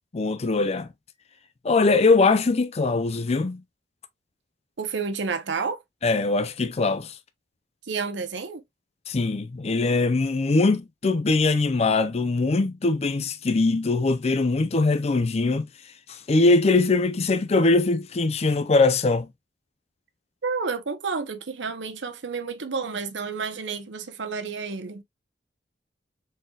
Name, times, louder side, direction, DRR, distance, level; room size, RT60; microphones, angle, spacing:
voice 1, 0.1-0.9 1.6-3.6 6.0-7.1 9.1-15.6 16.1-19.3, left 3 dB, 35° left, 0.5 m, -22 dB
voice 2, 4.8-5.8 7.9-8.6 20.4-25.0, right 5 dB, 90° right, 0.8 m, -30 dB
4.3 x 3.8 x 2.3 m
head